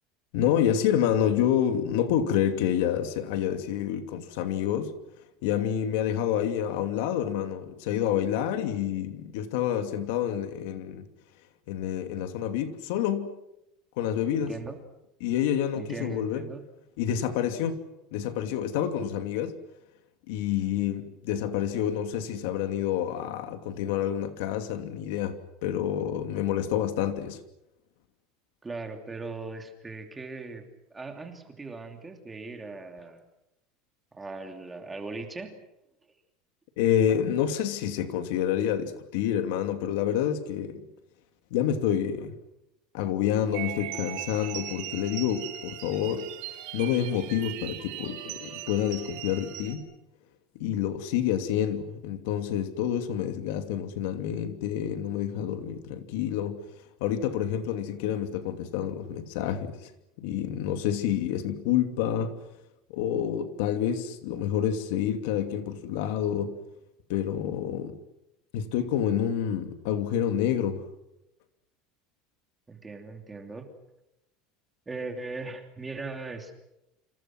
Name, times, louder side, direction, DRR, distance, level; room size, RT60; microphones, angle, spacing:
voice 1, 0.3-4.9 5.4-11.1 11.7-13.3 14.0-14.5 15.2-16.4 17.0-17.8 18.1-19.6 20.3-27.4 36.8-40.9 41.5-42.4 42.9-46.3 46.7-49.9 50.6-56.6 57.0-59.9 60.2-62.4 62.9-66.6 67.1-68.0 68.5-70.8, left 10 dB, 65° left, 2.8 m, -28 dB
voice 2, 14.3-14.8 15.7-16.6 28.6-33.2 34.1-35.6 72.7-73.7 74.9-76.5, right 3 dB, 10° right, 2.9 m, -39 dB
sound 1, 43.5-49.8, right 13 dB, 55° right, 4.5 m, -39 dB
28.5 x 27.0 x 6.2 m
cardioid pair, 175°, 0 cm